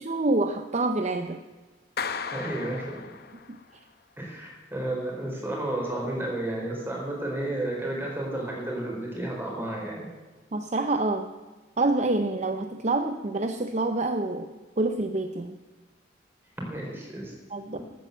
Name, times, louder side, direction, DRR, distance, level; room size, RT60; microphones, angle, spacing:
voice 1, 0.0-1.4 10.5-11.3 11.8-14.5 14.8-15.6 17.5-17.8, right 2 dB, 35° right, 8 dB, 0.6 m, -27 dB
Clapping, 2.0-3.7, left 6 dB, 55° left, 0.8 m, -35 dB
voice 2, 2.3-3.1 4.2-10.1 16.7-17.3, right 1 dB, 10° right, -2 dB, 4.0 m, -32 dB
13.5 x 8.8 x 8.0 m, 1.3 s
head